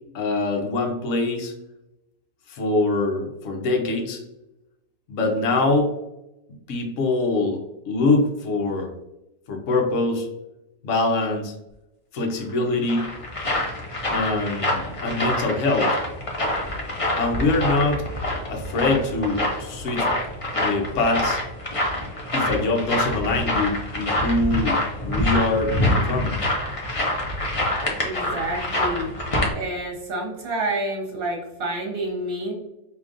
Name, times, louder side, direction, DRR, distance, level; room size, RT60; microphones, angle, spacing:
voice 1, 0.1-1.5 2.5-4.2 5.1-5.9 6.7-8.9 9.5-10.3 10.8-11.5 12.1-13.1 14.1-16.0 17.2-18.0 18.5-20.1 20.6-21.4 22.3-26.4 28.3-28.4, left 2 dB, 60° left, 2 dB, 1.0 m, -24 dB
sound 1, 12.5-29.5, left 1 dB, 35° left, 0.6 m, -26 dB
voice 2, 28.0-29.1 29.5-32.5, right 1 dB, 40° right, 0 dB, 1.2 m, -28 dB
4.9 x 2.9 x 2.5 m, 0.93 s
omnidirectional pair, 1.6 m